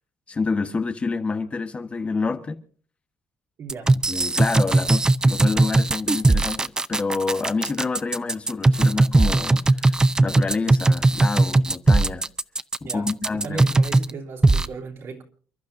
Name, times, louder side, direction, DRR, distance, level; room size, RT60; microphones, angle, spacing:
voice 1, 0.3-2.6 4.1-12.3 12.8-13.6, left 4 dB, 25° left, 1.2 m, -28 dB
voice 2, 3.6-3.9 12.8-13.1 13.4-15.2, right 4 dB, 55° right, 3.2 m, -35 dB
sound 1, 3.7-14.1 14.4-14.7, right 2 dB, 15° right, 0.6 m, -18 dB
29.5 x 12.0 x 2.6 m
cardioid pair, 115°, 5 cm